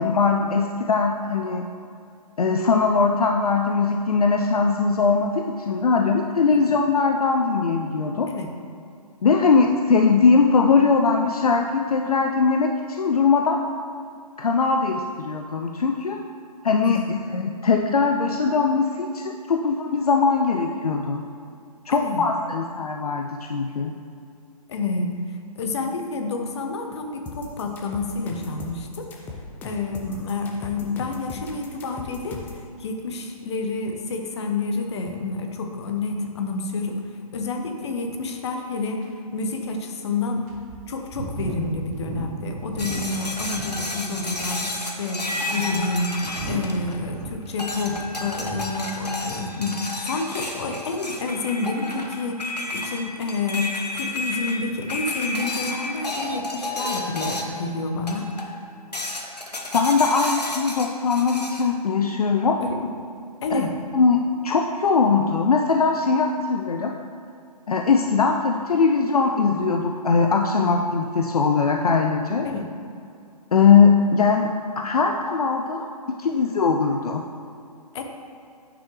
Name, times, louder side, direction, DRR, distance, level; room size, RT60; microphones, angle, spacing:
voice 1, 0.0-1.6 2.4-8.3 9.2-13.6 14.4-16.2 16.6-21.2 21.9-23.9 59.7-62.6 63.5-63.7 63.9-66.9 67.7-72.5 73.5-75.9 76.2-77.2, left 5 dB, 65° left, 3 dB, 0.5 m, -20 dB
voice 2, 21.9-22.2 24.7-25.2 25.6-29.1 29.6-32.4 32.8-37.0 37.3-40.5 40.9-46.1 46.4-58.3 62.6-62.8 63.4-63.8 72.4-72.7 77.9-78.0, left 3 dB, 45° left, 4 dB, 0.9 m, -29 dB
sound 1, 27.3-32.6, left 3 dB, 10° left, 0.4 m, -38 dB
sound 2, 38.3-38.4 39.0-39.1 39.8-39.9 40.5-43.8 44.1-44.6 45.3-48.8 49.1-49.4, right 2 dB, 25° right, 0.8 m, -36 dB
sound 3, 42.8-47.2 47.6-57.7 58.1-58.6 58.9-61.7, left 2 dB, 80° left, 1.0 m, -31 dB
9.4 x 6.1 x 3.1 m, 2.4 s
figure-of-eight pair, 130°, 20 cm